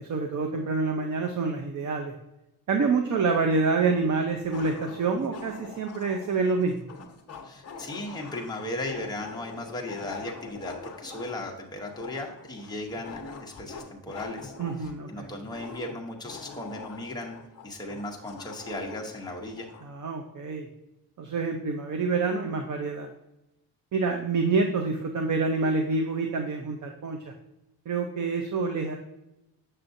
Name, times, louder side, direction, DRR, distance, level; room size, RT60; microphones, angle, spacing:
voice 1, 0.0-2.1 2.7-6.8 14.6-15.3 19.8-20.7 21.2-23.1 23.9-27.3 27.9-29.0, right 4 dB, 45° right, 3 dB, 0.6 m, -27 dB
sound 1, 3.5-3.6 4.5-19.9, left 4 dB, 40° left, 0.9 m, -44 dB
voice 2, 7.4-14.5 15.1-17.4 17.6-19.7, left 1 dB, 10° left, -1 dB, 0.9 m, -36 dB
7.3 x 6.7 x 2.6 m, 0.92 s
wide cardioid pair, 175°, 40 cm